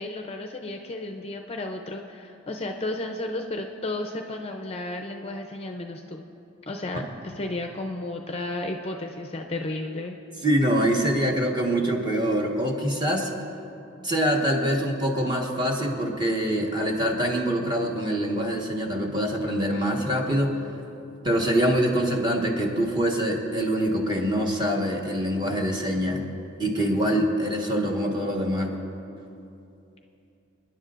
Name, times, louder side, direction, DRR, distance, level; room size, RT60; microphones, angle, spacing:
voice 1, 0.0-6.2 6.7-10.2, left 2 dB, 30° left, 3 dB, 0.5 m, -33 dB
voice 2, 10.4-13.3 14.0-20.6 21.2-26.3 26.6-28.7, equal, 20° right, 0 dB, 1.4 m, -24 dB
28.5 x 10.5 x 2.5 m, 2.7 s
head